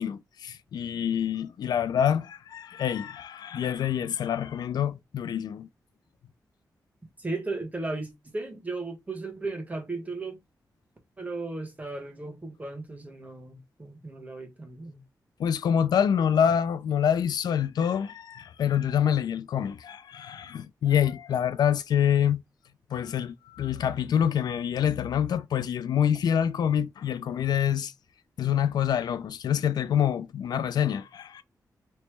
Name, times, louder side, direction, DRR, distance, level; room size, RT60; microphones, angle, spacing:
voice 1, 0.0-5.7 15.4-22.4 22.9-27.9 28.4-31.4, left 9 dB, 85° left, 0.4 m, -26 dB
voice 2, 7.2-10.4 11.2-15.0, right 3 dB, 20° right, 1.2 m, -35 dB
3.2 x 2.9 x 3.1 m
wide cardioid pair, 100°, 7 cm